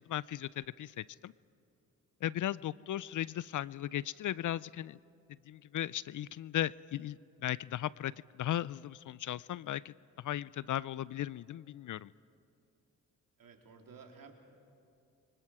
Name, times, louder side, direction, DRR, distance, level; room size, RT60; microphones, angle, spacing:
voice 1, 0.0-1.3 2.2-5.0 5.5-12.1, left 12 dB, 55° left, 21 dB, 0.5 m, -37 dB
voice 2, 13.4-14.3, right 5 dB, 65° right, 2 dB, 3.2 m, -54 dB
30.0 x 24.5 x 4.9 m, 2.7 s
supercardioid pair, 50°, 37 cm